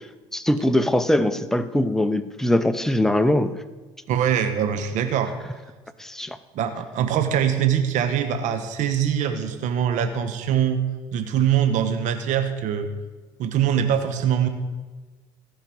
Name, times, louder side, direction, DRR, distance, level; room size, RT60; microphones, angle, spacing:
voice 1, 0.3-3.5 6.0-6.4, left 1 dB, 5° left, 11 dB, 0.8 m, -21 dB
voice 2, 4.1-5.3 6.5-10.8 11.1-12.9 13.4-14.5, right 9 dB, 60° right, 8 dB, 1.2 m, -23 dB
15.0 x 5.3 x 7.7 m, 1.3 s
hypercardioid pair, 65°, 14 cm